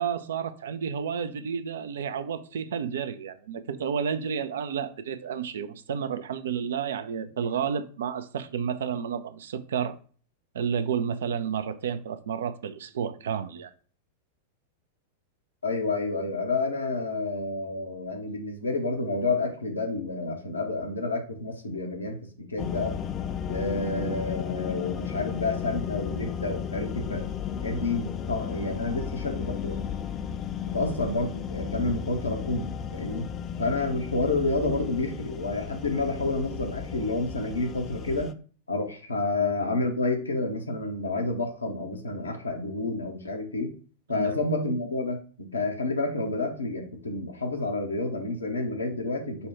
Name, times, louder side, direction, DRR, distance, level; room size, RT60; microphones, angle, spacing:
voice 1, 0.0-9.9 10.5-13.7 44.1-44.3, right 7 dB, 65° right, 0.4 m, -31 dB
voice 2, 15.6-22.9 23.5-27.3 27.6-29.8 30.7-33.3 33.6-38.4 38.7-43.7 44.1-49.5, left 2 dB, 75° left, 0.9 m, -29 dB
sound 1, 22.6-38.3, left 8 dB, 30° left, 0.4 m, -34 dB
5.5 x 2.2 x 4.3 m
figure-of-eight pair, 90°, 0 cm